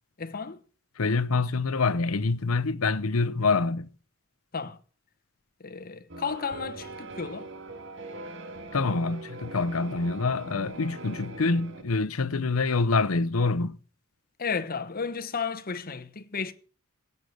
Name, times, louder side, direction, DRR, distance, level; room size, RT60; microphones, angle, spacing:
voice 1, 0.2-0.6 4.5-4.8 5.6-7.5 14.4-16.5, left 5 dB, 45° left, 1.1 m, -33 dB
voice 2, 1.0-3.9 8.7-13.8, left 3 dB, 90° left, 0.8 m, -26 dB
sound 1, 6.1-11.8, right 2 dB, 60° right, 2.2 m, -41 dB
17.0 x 6.8 x 7.9 m
head